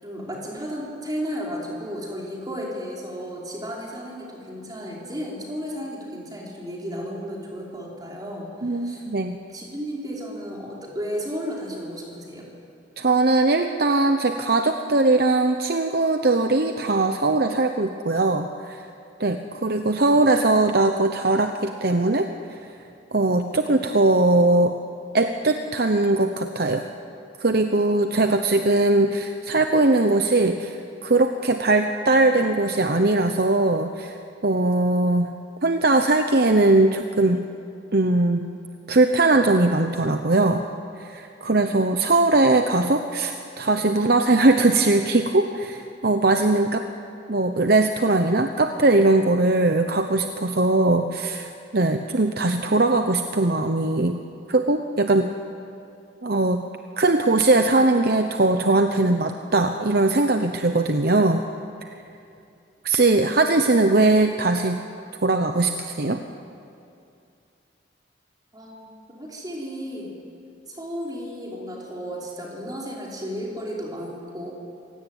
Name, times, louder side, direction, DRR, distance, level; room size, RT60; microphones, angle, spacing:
voice 1, 0.0-9.0 9.5-12.5 68.5-70.1 70.7-74.5, equal, 20° right, -3 dB, 5.0 m, -33 dB
voice 2, 8.6-9.4 13.0-18.8 19.2-22.3 23.1-24.8 25.1-26.8 27.4-34.2 34.4-35.3 35.6-37.5 37.9-38.5 38.9-40.6 41.0-46.8 47.3-54.2 54.5-55.3 56.2-56.6 57.0-61.4 62.8-64.8 65.2-66.2, right 2 dB, 50° right, 6 dB, 0.9 m, -20 dB
26.5 x 17.5 x 9.3 m, 2.6 s
head